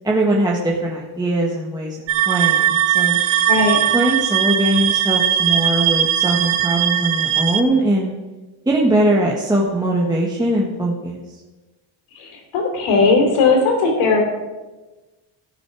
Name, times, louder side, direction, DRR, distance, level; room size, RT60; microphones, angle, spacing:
voice 1, 0.0-3.2 3.9-8.1 8.6-11.2, right 1 dB, 10° right, -3 dB, 1.4 m, -20 dB
sound 1, 2.1-7.6, right 11 dB, 75° right, 0.9 m, -19 dB
voice 2, 3.5-3.8 12.1-14.2, left 4 dB, 85° left, -1 dB, 3.4 m, -17 dB
19.0 x 6.5 x 4.8 m, 1.2 s
cardioid pair, 135°, 49 cm